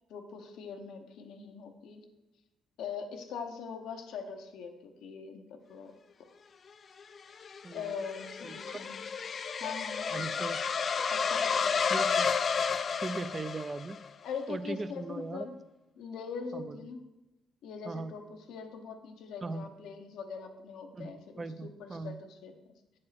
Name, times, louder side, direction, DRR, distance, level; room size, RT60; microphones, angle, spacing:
voice 1, 0.1-2.0 2.8-5.9 7.7-9.0 9.6-10.2 11.1-11.8 14.2-15.5 16.0-17.0 17.6-23.0, left 6 dB, 85° left, 5 dB, 0.9 m, -42 dB
sound 1, 7.0-14.1, left 6 dB, 45° left, 0.3 m, -31 dB
voice 2, 7.6-8.0 8.4-8.8 10.1-10.6 11.9-12.3 12.9-14.0 14.5-15.5 16.5-16.8 17.8-18.1 19.4-19.7 20.9-22.2, right 3 dB, 30° right, 13 dB, 0.4 m, -39 dB
7.6 x 4.3 x 5.8 m, 1.0 s
cardioid pair, 90°, 0 cm